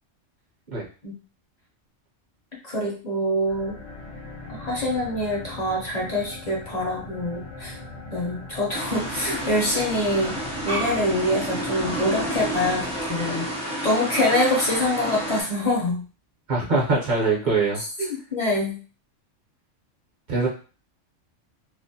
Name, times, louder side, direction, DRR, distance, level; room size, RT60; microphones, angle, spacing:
voice 1, 2.6-3.8 4.5-7.8 8.1-10.4 10.6-13.5 13.8-16.0 17.7-18.8, left 1 dB, 50° left, -3 dB, 0.5 m, -25 dB
sound 1, 3.4-13.9, left 2 dB, 80° left, 0.9 m, -40 dB
sound 2, 8.7-15.4, right 1 dB, 10° right, 0.4 m, -30 dB
voice 2, 16.5-17.8 20.3-20.5, right 3 dB, 50° right, -4 dB, 0.7 m, -22 dB
2.3 x 2.0 x 2.6 m, 0.37 s
omnidirectional pair, 1.3 m